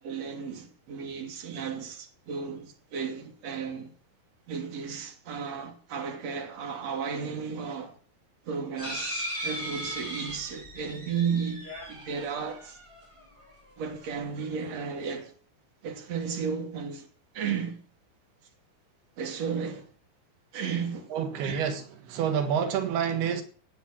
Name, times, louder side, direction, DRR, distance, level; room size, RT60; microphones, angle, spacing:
voice 1, 0.0-3.9 4.5-8.0 8.5-12.8 13.8-15.3 15.8-17.1 17.3-17.8 19.2-19.9 20.5-21.1 21.4-21.6, right 6 dB, 45° right, 3.6 m, -34 dB
sound 1, 8.8-13.4 14.0-14.1 14.4-14.5, equal, 5° right, 4.4 m, -38 dB
voice 2, 21.1-23.4, right 8 dB, 85° right, 3.7 m, -28 dB
18.0 x 8.4 x 7.3 m
omnidirectional pair, 4.4 m